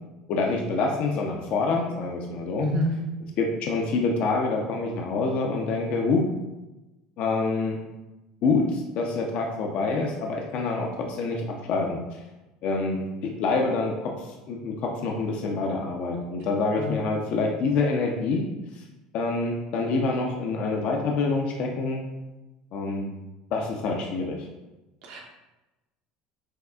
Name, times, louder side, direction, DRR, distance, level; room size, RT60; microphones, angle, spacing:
voice 1, 0.3-2.7 3.4-6.2 7.2-7.8 8.4-12.2 12.6-18.4 18.7-18.8 19.1-22.0 22.7-23.1 23.5-24.5, left 3 dB, 60° left, 1 dB, 0.5 m, -26 dB
voice 2, 2.6-2.9 16.7-17.0 25.0-25.2, equal, 70° right, -1 dB, 1.0 m, -27 dB
6.2 x 2.3 x 2.3 m, 1.0 s
hypercardioid pair, 85°, 3 cm